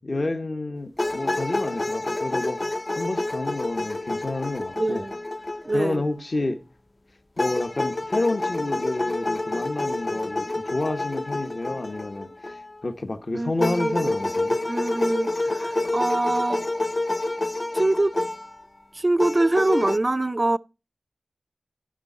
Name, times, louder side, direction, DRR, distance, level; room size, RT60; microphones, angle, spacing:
voice 1, 0.0-2.6 3.0-5.0 5.7-6.6 7.4-14.6, left 2 dB, 50° left, 1.0 m, -29 dB
sound 1, 1.0-6.1 7.4-12.9 13.6-18.5 19.2-20.0, left 2 dB, 30° left, 0.4 m, -28 dB
voice 2, 4.8-5.1 5.7-6.0 10.1-10.6 13.3-14.2 14.7-16.6 17.7-18.1 18.9-20.6, right 2 dB, 35° right, 0.4 m, -24 dB
9.9 x 5.7 x 5.4 m
wide cardioid pair, 75°, 0 cm